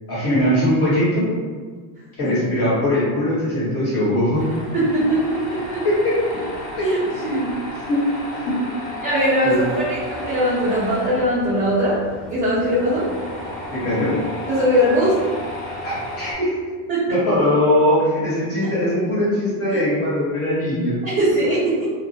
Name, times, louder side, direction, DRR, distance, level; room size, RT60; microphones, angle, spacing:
voice 1, 0.1-1.3 2.2-4.5 5.8-6.2 6.8-6.9 7.9-8.0 8.4-8.6 9.4-9.8 13.7-14.2 15.8-16.6 17.1-20.9, left 1 dB, 35° left, -9 dB, 1.3 m, -20 dB
Tools, 4.3-16.3, left 1 dB, 15° left, 1.0 m, -33 dB
voice 2, 4.7-5.8 6.8-7.5 9.0-9.6 9.9-12.0 12.3-13.1 14.5-15.2 16.9-17.2 18.6-18.7 21.0-21.9, equal, 20° right, -12 dB, 0.7 m, -20 dB
2.3 x 2.1 x 2.6 m, 1.5 s
supercardioid pair, 130°, 45 cm